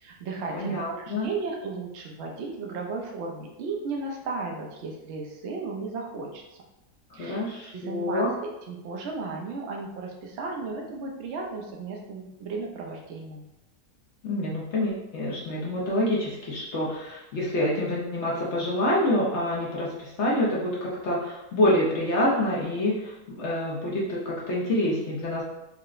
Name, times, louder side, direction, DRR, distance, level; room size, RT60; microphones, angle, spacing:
voice 1, 0.0-6.4 7.1-7.4 7.7-13.4, right 3 dB, 65° right, 0 dB, 0.7 m, -35 dB
voice 2, 0.5-1.3 7.2-8.3 14.2-25.4, left 1 dB, 60° left, -5 dB, 0.7 m, -27 dB
4.6 x 2.0 x 2.4 m, 0.95 s
omnidirectional pair, 1.7 m